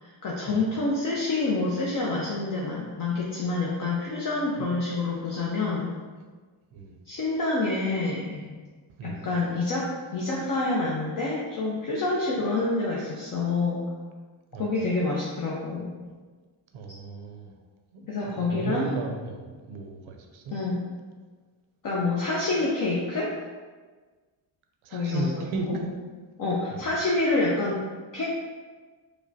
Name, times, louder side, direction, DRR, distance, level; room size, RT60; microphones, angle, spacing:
voice 1, 0.0-5.9 7.1-8.6 9.0-13.9 14.6-15.9 18.1-18.9 20.5-20.8 21.8-23.3 24.9-25.4 25.7-25.8 26.4-28.3, left 3 dB, 45° left, -4 dB, 0.7 m, -27 dB
voice 2, 9.0-9.3 14.5-14.8 16.7-17.5 17.9-20.5 24.8-25.9 26.7-26.9, right 4 dB, 75° right, 4 dB, 0.6 m, -35 dB
4.8 x 2.2 x 2.7 m, 1.4 s
cardioid pair, 85°, 49 cm